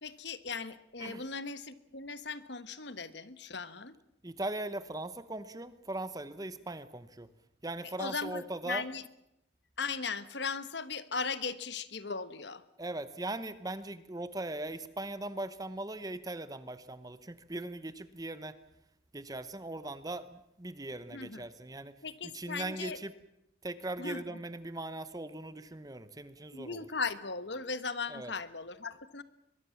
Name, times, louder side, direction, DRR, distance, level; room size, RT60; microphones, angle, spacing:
voice 1, 0.0-3.9 7.8-9.1 9.8-12.6 21.1-21.4 22.0-23.0 24.0-24.4 26.5-29.2, left 4 dB, 60° left, 13 dB, 1.3 m, -38 dB
voice 2, 4.2-7.3 7.6-8.8 12.8-18.6 19.1-21.9 22.3-23.1 23.6-26.9 28.1-28.3, right 2 dB, 20° right, 13 dB, 0.9 m, -39 dB
22.5 x 22.5 x 7.2 m, 0.82 s
head